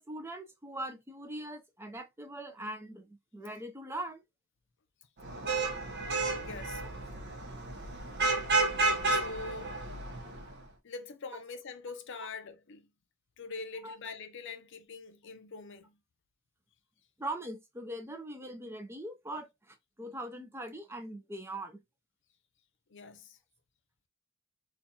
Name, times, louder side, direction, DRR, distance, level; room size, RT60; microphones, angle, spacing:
voice 1, 0.0-4.2 13.8-13.9 17.2-21.8, right 1 dB, 10° right, 0.4 m, -41 dB
Vehicle horn car horn honking / Traffic noise roadway noise, 5.2-10.5, right 3 dB, 50° right, 0.7 m, -31 dB
voice 2, 6.4-6.8 9.1-9.8 10.8-12.9 13.4-16.0 22.9-23.4, left 4 dB, 55° left, 0.5 m, -43 dB
4.3 x 2.4 x 2.6 m
head